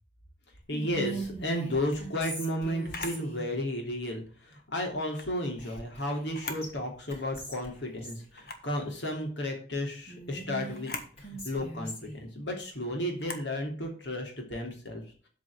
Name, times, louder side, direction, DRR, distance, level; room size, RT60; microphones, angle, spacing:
voice 1, 0.7-15.3, left 1 dB, 75° left, 2 dB, 3.1 m, -33 dB
Whispering, 0.7-3.5 5.6-6.3 6.6-6.7 7.1-8.2 10.1-12.2, right 2 dB, 35° left, 3.6 m, -41 dB
Camera, 2.9-3.2 5.0-5.3 6.2-6.7 7.2-7.3 8.3-8.7 10.7-11.1 13.2-13.5, left 4 dB, 55° left, 1.5 m, -40 dB
8.3 x 5.2 x 7.1 m, 0.41 s
head